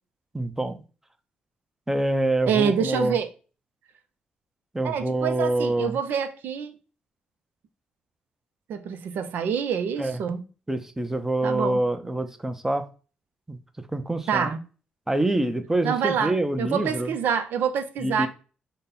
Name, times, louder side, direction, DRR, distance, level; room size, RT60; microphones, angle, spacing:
voice 1, 0.3-0.8 1.9-3.2 4.7-6.0 10.0-10.2 10.7-12.9 13.5-14.5 15.1-17.1 18.0-18.3, right 1 dB, 10° right, 0.6 m, -26 dB
voice 2, 2.5-3.3 4.8-6.7 8.7-10.4 11.4-11.8 14.3-14.6 15.8-18.3, right 7 dB, 80° right, 0.6 m, -26 dB
5.3 x 2.2 x 4.0 m
cardioid pair, 65°, 3 cm